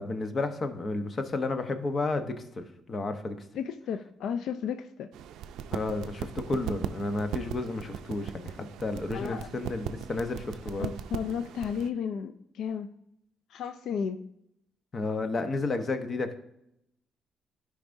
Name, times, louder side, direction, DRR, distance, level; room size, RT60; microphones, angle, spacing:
voice 1, 0.0-3.4 5.7-10.9 14.9-16.4, left 3 dB, 40° left, 8 dB, 0.9 m, -32 dB
voice 2, 3.5-5.1 9.1-9.5 10.8-12.9 13.5-14.2, left 7 dB, 75° left, 9 dB, 0.4 m, -33 dB
sound 1, 5.1-11.9, right 9 dB, 85° right, 0.4 m, -38 dB
11.5 x 5.0 x 2.6 m, 0.79 s
cardioid pair, 90°, 0 cm